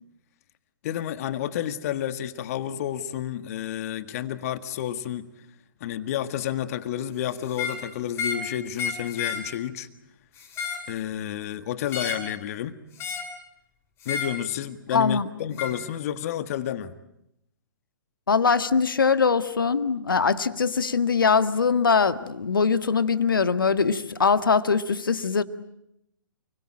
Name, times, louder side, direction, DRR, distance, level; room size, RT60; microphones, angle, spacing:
voice 1, 0.8-5.3 5.8-9.9 10.9-12.8 14.0-16.9, left 11 dB, 45° left, 1.6 m, -30 dB
sound 1, 7.5-7.8 8.1-8.5 8.7-9.4 10.4-10.9 11.9-12.3 13.0-13.3 14.0-14.4 15.6-15.8, left 5 dB, 20° left, 7.6 m, -31 dB
voice 2, 14.9-15.3 18.3-25.4, left 5 dB, 75° left, 1.7 m, -22 dB
29.5 x 22.5 x 8.9 m
figure-of-eight pair, 125°, 11 cm